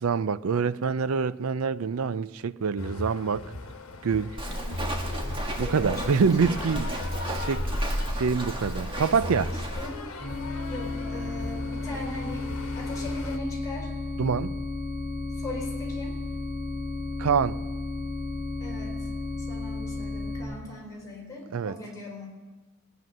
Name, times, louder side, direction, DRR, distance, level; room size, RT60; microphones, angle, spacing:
voice 1, 0.0-3.5 4.0-4.4 5.6-6.9 7.3-7.7 8.1-9.5 14.2-14.6 17.2-17.6 21.5-21.7, right 5 dB, 90° right, 0.5 m, -26 dB
sound 1, 2.8-13.4, left 2 dB, 85° left, 1.1 m, -39 dB
voice 2, 4.4-4.8 5.6-6.8 8.8-10.1 10.7-13.9 15.3-16.2 18.6-19.0 19.5-22.3, left 2 dB, 15° left, 3.9 m, -39 dB
Walk footsteps, 4.4-9.9, equal, 25° right, 1.5 m, -32 dB
sound 2, 10.2-20.4, left 3 dB, 40° right, 4.9 m, -33 dB
20.0 x 9.2 x 6.3 m
head